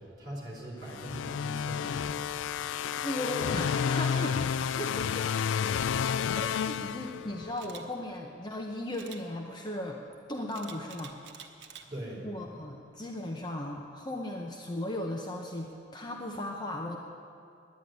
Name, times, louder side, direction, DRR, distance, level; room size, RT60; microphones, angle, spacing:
voice 1, 0.0-2.5 11.8-12.2, right 1 dB, 20° right, -4 dB, 3.8 m, -42 dB
sound 1, 0.9-7.6, left 7 dB, 85° left, 0.3 m, -31 dB
voice 2, 3.0-5.3 6.3-10.0 10.3-11.2 12.2-17.0, left 1 dB, 25° left, 1 dB, 0.7 m, -37 dB
Camera, 7.6-7.8 8.9-9.2 10.5-11.8 12.3-12.6, right 7 dB, 70° right, 1.1 m, -48 dB
10.5 x 10.0 x 9.4 m, 2.4 s
head